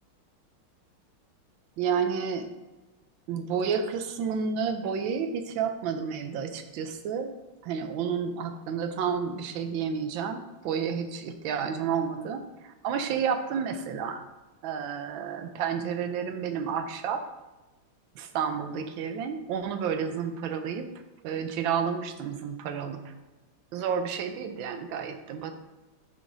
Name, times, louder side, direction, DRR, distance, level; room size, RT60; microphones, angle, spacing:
voice 1, 1.8-2.5 3.3-7.3 7.6-14.2 14.6-17.2 18.2-20.9 21.2-23.0 23.7-25.5, right 7 dB, 75° right, 7 dB, 1.3 m, -30 dB
8.5 x 4.8 x 2.6 m, 1.1 s
omnidirectional pair, 2.4 m